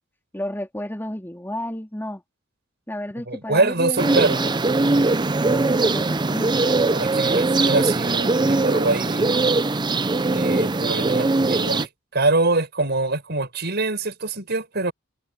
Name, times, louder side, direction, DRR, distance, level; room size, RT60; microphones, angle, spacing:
voice 1, 0.3-2.2 2.9-4.6 5.5-6.8, left 1 dB, 10° left, 3.5 m, -32 dB
voice 2, 3.3-4.4 6.9-9.6 10.3-14.9, right 2 dB, 55° right, 6.5 m, -24 dB
sound 1, 4.0-11.9, right 3 dB, 20° right, 0.5 m, -21 dB
head